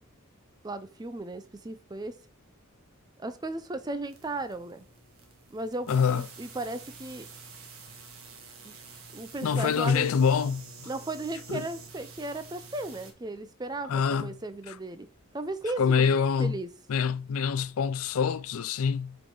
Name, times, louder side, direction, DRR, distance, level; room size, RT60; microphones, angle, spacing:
voice 1, 0.6-2.2 3.2-4.9 5.5-7.3 8.6-8.7 9.1-10.1 10.9-15.1 15.3-16.7, right 2 dB, 20° right, 0.5 m, -36 dB
sound 1, 4.0-13.1, right 4 dB, 75° right, 1.5 m, -48 dB
voice 2, 5.9-6.2 9.4-10.9 11.5-11.6 13.9-14.3 15.8-16.6 16.9-19.2, left 6 dB, 75° left, 0.4 m, -25 dB
7.8 x 3.9 x 3.9 m
head